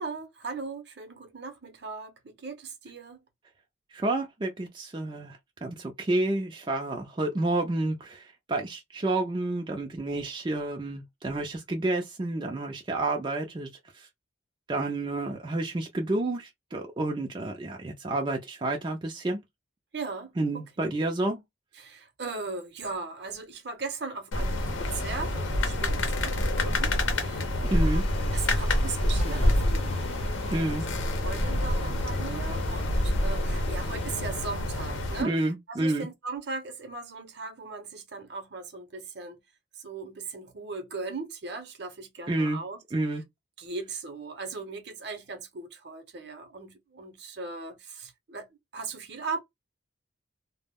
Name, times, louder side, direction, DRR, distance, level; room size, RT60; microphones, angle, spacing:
voice 1, 0.0-3.2 19.9-20.6 21.8-30.7 31.2-39.4 39.7-42.8 43.6-48.5 48.7-49.4, right 4 dB, 60° right, 0.7 m, -38 dB
voice 2, 3.9-14.1 14.7-19.4 20.4-21.4 27.7-28.0 30.5-30.8 35.2-36.1 42.3-42.6 42.9-43.2, right 2 dB, 25° right, 0.3 m, -30 dB
sound 1, 24.3-35.2, left 1 dB, 80° left, 0.7 m, -27 dB
sound 2, 27.7-34.2, left 2 dB, 30° left, 0.6 m, -39 dB
2.2 x 2.0 x 3.4 m
head